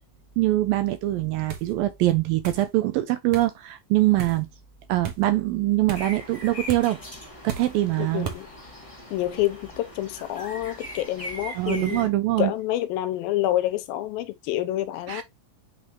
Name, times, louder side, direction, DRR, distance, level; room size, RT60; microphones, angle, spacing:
voice 1, 0.4-4.5 4.9-7.0 7.4-8.3 11.6-12.5 15.1-15.2, right 16 dB, 80° right, 2.3 m, -23 dB
sound 1, 1.5-1.7 2.4-2.7 3.3-3.5 4.2-4.4 5.0-5.2 5.9-6.1 6.7-6.9 7.5-7.8 8.2-8.4, right 7 dB, 55° right, 1.8 m, -35 dB
sound 2, 5.9-12.1, equal, 15° left, 1.1 m, -40 dB
voice 2, 8.0-8.5 9.1-12.1 12.4-15.2, left 14 dB, 80° left, 2.4 m, -28 dB
8.6 x 4.0 x 2.9 m
omnidirectional pair, 4.4 m